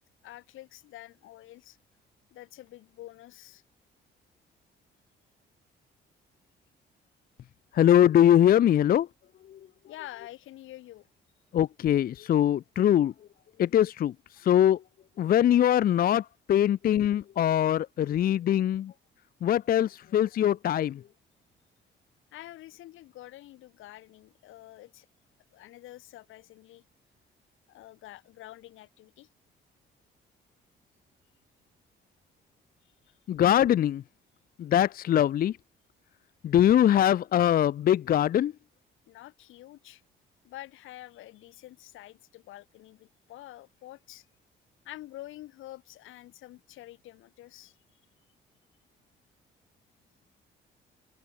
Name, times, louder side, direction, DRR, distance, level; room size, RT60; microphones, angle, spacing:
voice 1, 0.2-1.8 2.3-3.6 9.9-11.1 22.3-25.1 25.5-26.8 27.7-29.3 32.8-32.9 39.1-40.0 40.4-44.3 44.8-47.8, left 15 dB, 90° left, 3.7 m, -47 dB
voice 2, 7.7-9.1 11.5-13.1 13.6-14.1 14.4-14.8 15.2-18.9 19.4-21.0 33.3-34.0 34.6-35.5 36.4-38.5, left 11 dB, 50° left, 0.4 m, -22 dB
cardioid pair, 90°, 20 cm